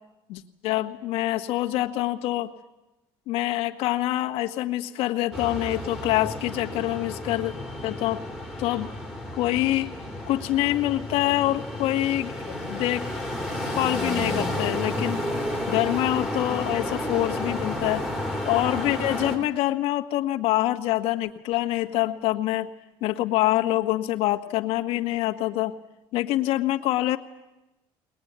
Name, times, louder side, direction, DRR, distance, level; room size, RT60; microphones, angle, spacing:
voice 1, 0.3-2.5 3.3-7.5 7.8-8.2 8.6-8.9 9.3-9.9 10.3-12.3 12.7-13.1 13.8-15.2 15.7-18.0 18.4-22.7 23.0-25.7 26.1-27.2, left 16 dB, 75° left, 5 dB, 1.6 m, -25 dB
sound 1, 5.3-19.4, left 1 dB, 5° right, 3.6 m, -31 dB
22.0 x 20.5 x 9.5 m, 0.97 s
cardioid pair, 150°, 10 cm